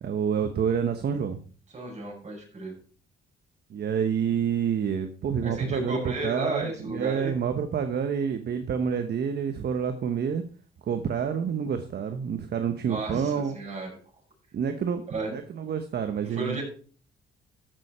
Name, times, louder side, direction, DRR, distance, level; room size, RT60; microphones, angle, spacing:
voice 1, 0.0-1.4 3.7-10.4 10.8-13.6 14.5-15.0 15.3-16.6, right 7 dB, 55° right, 8 dB, 1.1 m, -28 dB
voice 2, 1.7-2.7 5.4-7.3 12.9-13.9 15.1-15.3 16.2-16.6, right 2 dB, 35° right, -1 dB, 7.0 m, -33 dB
14.0 x 6.7 x 4.3 m, 0.40 s
cardioid pair, 90°, 20 cm